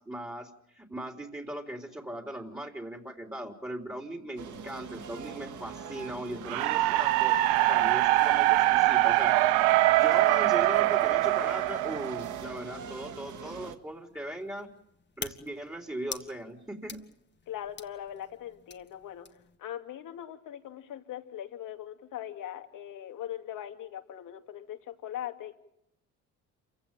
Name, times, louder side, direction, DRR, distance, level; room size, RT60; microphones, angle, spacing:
voice 1, 0.0-9.4 10.0-14.7 15.2-17.0, right 1 dB, 10° right, 2 dB, 3.7 m, -39 dB
sound 1, 4.4-13.8, right 6 dB, 60° right, 2.2 m, -43 dB
sound 2, 6.5-12.6, right 17 dB, 90° right, 0.8 m, -23 dB
sound 3, 13.3-19.6, left 5 dB, 35° left, 2.2 m, -47 dB
voice 2, 17.5-19.3 19.6-25.6, left 11 dB, 70° left, 6 dB, 2.7 m, -40 dB
28.0 x 16.0 x 9.1 m, 0.79 s
supercardioid pair, 70°, 33 cm